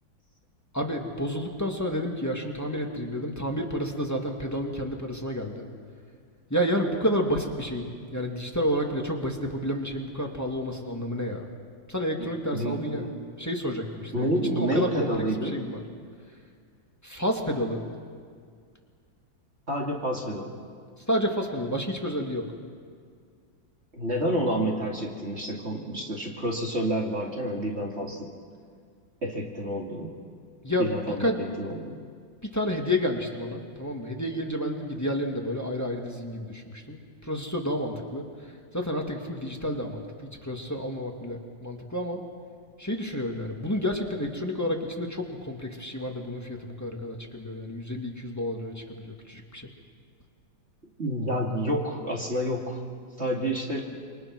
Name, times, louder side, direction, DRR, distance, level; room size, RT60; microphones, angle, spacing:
voice 1, 0.7-5.7 6.5-11.5 11.9-13.1 13.4-15.1 15.4-15.8 17.0-17.8 21.0-22.4 30.6-30.9 31.2-31.4 32.5-42.2 42.8-49.7, equal, 10° left, 1 dB, 2.0 m, -30 dB
voice 2, 12.2-13.1 14.1-15.6 19.7-20.5 23.9-28.3 29.2-30.1 30.8-31.3 31.6-32.0 51.0-52.8 53.2-53.9, right 1 dB, 35° right, -1 dB, 2.5 m, -29 dB
28.0 x 24.0 x 6.1 m, 2.1 s
omnidirectional pair, 2.1 m